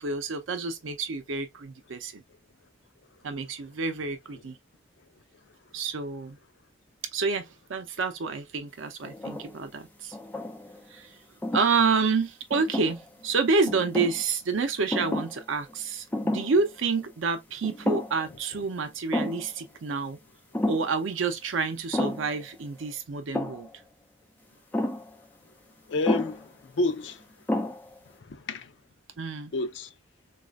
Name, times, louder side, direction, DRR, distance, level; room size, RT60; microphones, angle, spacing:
voice 1, 0.0-2.2 3.2-4.6 5.7-6.4 7.1-10.2 10.9-11.2 11.5-20.2 20.7-23.7 29.2-29.5, right 4 dB, 85° right, 0.6 m, -28 dB
sound 1, 9.0-9.6 10.1-10.8 11.4-11.7 12.5-13.2 13.7-14.2 14.9-15.4 15.7-15.8 16.1-16.6 17.0-17.1 17.6-18.3 18.6-18.7 19.1-19.5 20.5-20.9 21.9-22.4 23.3-23.7 24.7-25.1 26.1-26.4 27.1-27.2 27.5-28.0, left 1 dB, 10° left, 0.4 m, -30 dB
voice 2, 25.9-27.2 28.3-28.7 29.5-29.9, left 2 dB, 70° left, 0.5 m, -29 dB
4.0 x 2.4 x 2.3 m
head